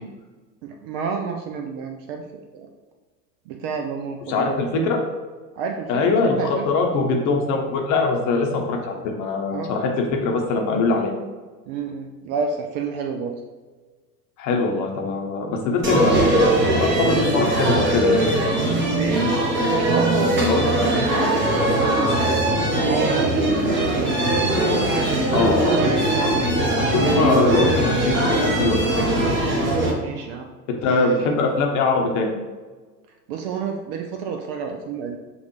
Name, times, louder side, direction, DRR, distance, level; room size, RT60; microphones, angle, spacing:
voice 1, 0.6-2.2 2.5-2.7 3.5-4.6 5.6-6.7 9.5-9.7 11.7-13.3 19.0-19.3 19.7-22.5 22.8-24.2 29.7-30.5 30.9-31.1 33.3-35.2, right 5 dB, 40° right, 3 dB, 0.5 m, -29 dB
voice 2, 4.3-5.0 5.9-11.1 14.4-18.2 20.4-20.6 25.3-25.8 26.8-29.2 30.8-32.3, left 3 dB, 35° left, 1 dB, 0.9 m, -22 dB
sound 1, 15.8-29.9, right 1 dB, 25° right, 1.0 m, -20 dB
6.9 x 2.4 x 3.1 m, 1.3 s
figure-of-eight pair, 80°, 49 cm